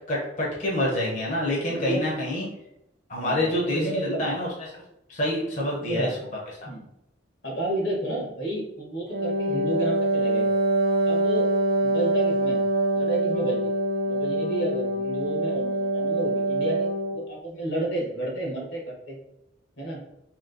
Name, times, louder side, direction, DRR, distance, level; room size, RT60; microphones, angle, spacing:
voice 1, 0.1-2.5 3.1-4.7 5.1-6.1, left 1 dB, 40° left, -4 dB, 0.9 m, -27 dB
voice 2, 1.7-2.1 3.1-4.3 5.8-6.1 6.6-6.8 7.4-10.5 11.1-11.5 11.8-12.6 12.9-13.6 14.1-19.2 19.8-20.0, right 1 dB, 65° left, -1 dB, 1.2 m, -31 dB
Wind instrument woodwind instrument, 9.1-17.2, right 1 dB, 50° right, 0.6 m, -24 dB
3.1 x 3.0 x 3.9 m, 0.83 s
head